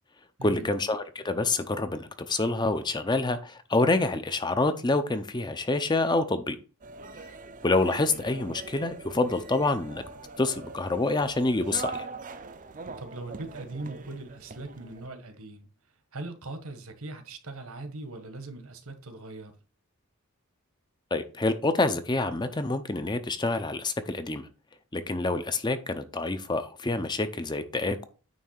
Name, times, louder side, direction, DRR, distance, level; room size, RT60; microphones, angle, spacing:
voice 1, 0.4-6.6 7.6-10.0 10.4-12.1 21.1-24.5 24.9-28.0, left 2 dB, 20° left, 0.6 m, -27 dB
sound 1, 6.8-15.1, right 3 dB, 35° right, 0.6 m, -42 dB
voice 2, 13.0-15.7 16.1-19.5, right 2 dB, 70° right, 1.5 m, -40 dB
9.4 x 3.3 x 6.5 m
head